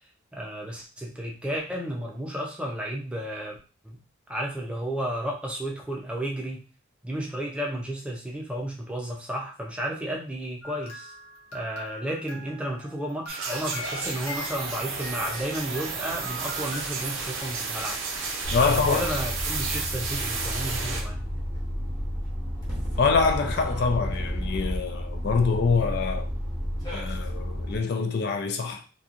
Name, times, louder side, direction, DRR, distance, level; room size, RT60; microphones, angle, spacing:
voice 1, 0.3-3.6 3.8-4.0 4.3-6.7 7.0-11.1 11.5-18.0 18.6-21.2, right 1 dB, 5° right, 0.5 m, -32 dB
sound 1, 10.6-16.8, left 1 dB, 70° left, 0.8 m, -42 dB
sound 2, 13.3-21.0, right 4 dB, 70° right, 0.6 m, -32 dB
sound 3, 18.4-27.8, equal, 20° left, 0.8 m, -31 dB
voice 2, 18.5-19.1 23.0-26.3 26.9-28.8, left 4 dB, 55° left, 0.3 m, -25 dB
2.8 x 2.3 x 2.5 m
head